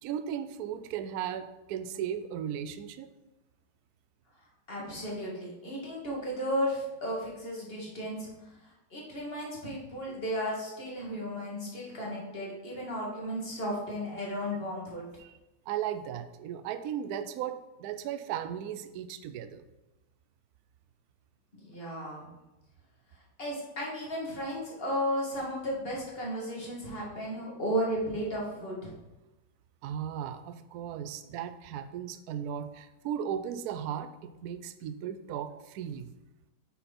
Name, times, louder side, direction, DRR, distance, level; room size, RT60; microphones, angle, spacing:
voice 1, 0.0-3.1 15.2-15.4 15.7-19.6 29.8-36.1, right 9 dB, 85° right, 11 dB, 0.8 m, -36 dB
voice 2, 4.7-15.1 21.5-22.3 23.4-28.9, equal, 30° left, -3 dB, 2.2 m, -34 dB
9.1 x 5.7 x 4.3 m, 1.0 s
omnidirectional pair, 2.2 m